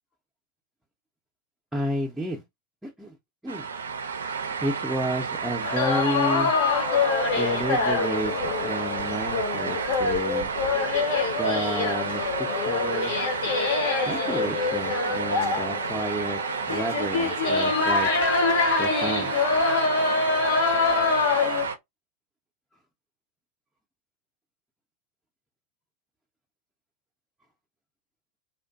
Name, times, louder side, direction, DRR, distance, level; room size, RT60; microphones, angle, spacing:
voice 1, 1.7-2.4 2.8-3.2 3.4-3.7 4.6-6.5 7.3-10.5 11.4-13.2 14.1-16.4 16.7-18.1 18.8-19.3, right 1 dB, 5° right, 0.5 m, -31 dB
sound 1, 3.5-21.8, right 6 dB, 70° right, 0.4 m, -31 dB
sound 2, 5.6-21.6, left 4 dB, 50° left, 0.7 m, -25 dB
2.5 x 2.2 x 2.2 m
figure-of-eight pair, 90°, 0 cm